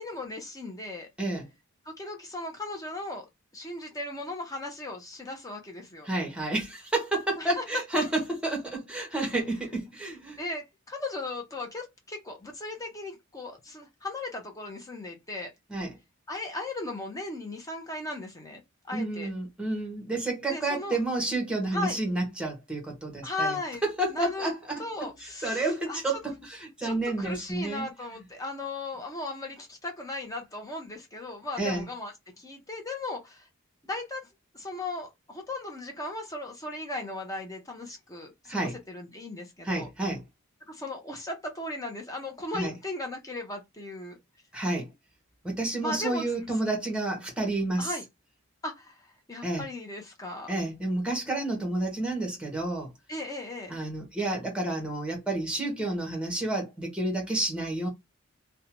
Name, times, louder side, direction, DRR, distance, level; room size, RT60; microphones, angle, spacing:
voice 1, 0.0-1.1 1.8-3.3 3.5-6.1 7.4-7.6 10.4-15.5 16.3-18.6 18.9-19.3 20.5-21.0 21.7-22.0 23.2-23.9 24.1-24.5 24.8-26.0 26.8-33.5 33.9-34.3 34.5-39.9 40.7-44.2 45.8-46.3 47.8-48.0 48.6-50.5 53.1-53.7, left 2 dB, 15° left, 0.5 m, -37 dB
voice 2, 6.1-10.4 15.7-16.0 18.9-23.5 23.8-24.8 25.4-27.9 31.6-31.8 38.5-38.8 39.6-40.2 42.5-42.7 44.5-44.9 45.4-47.9 49.4-49.6 50.5-52.9 53.7-57.9, right 2 dB, 5° right, 0.9 m, -30 dB
2.6 x 2.1 x 2.9 m
head